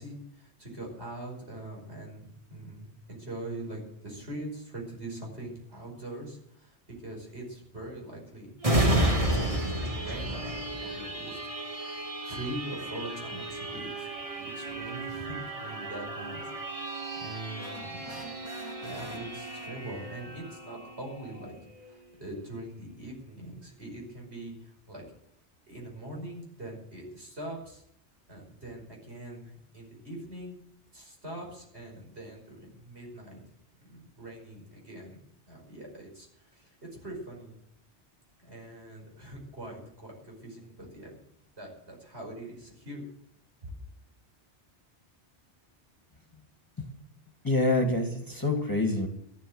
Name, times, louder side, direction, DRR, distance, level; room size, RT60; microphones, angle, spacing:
voice 1, 0.0-6.8 7.0-8.5 8.9-18.3 18.8-21.6 21.8-25.0 25.7-27.8 28.3-30.6 30.9-33.4 33.8-35.2 35.5-37.5 38.4-41.2 41.6-43.1 43.6-43.7, right 1 dB, 65° right, -1 dB, 6.0 m, -43 dB
sound 1, 8.6-21.9 22.4-22.5, right 1 dB, 30° right, 1.8 m, -32 dB
sound 2, 17.6-20.2, right 3 dB, 15° right, 1.2 m, -46 dB
voice 2, 47.4-49.1, left 2 dB, 20° left, 3 dB, 2.2 m, -26 dB
14.5 x 11.0 x 8.0 m, 0.74 s
omnidirectional pair, 1.2 m